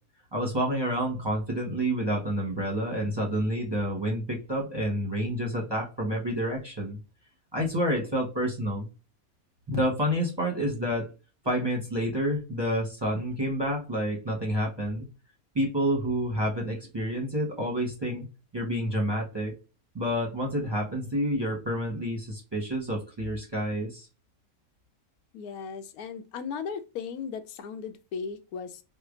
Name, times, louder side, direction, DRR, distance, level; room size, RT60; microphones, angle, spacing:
voice 1, 0.3-7.0 7.5-8.9 9.7-11.1 11.4-15.1 15.5-18.3 18.5-19.5 19.9-24.1, equal, 20° right, 0.7 m, -29 dB
voice 2, 25.3-28.8, left 6 dB, 85° left, 1.0 m, -37 dB
4.9 x 2.1 x 2.4 m
omnidirectional pair, 1.5 m